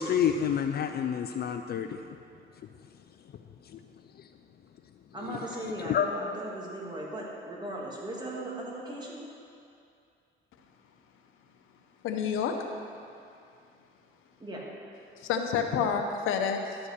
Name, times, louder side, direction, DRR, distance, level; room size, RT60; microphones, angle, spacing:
voice 1, 0.0-2.0 3.7-3.8 5.8-6.1, left 8 dB, 55° left, 7 dB, 0.4 m, -28 dB
voice 2, 5.1-9.2 14.4-14.7, right 1 dB, 20° right, -4 dB, 2.4 m, -37 dB
voice 3, 12.0-12.6 15.2-16.8, left 7 dB, 85° left, 4 dB, 0.8 m, -28 dB
11.0 x 5.3 x 6.7 m, 2.5 s
cardioid pair, 90°, 20 cm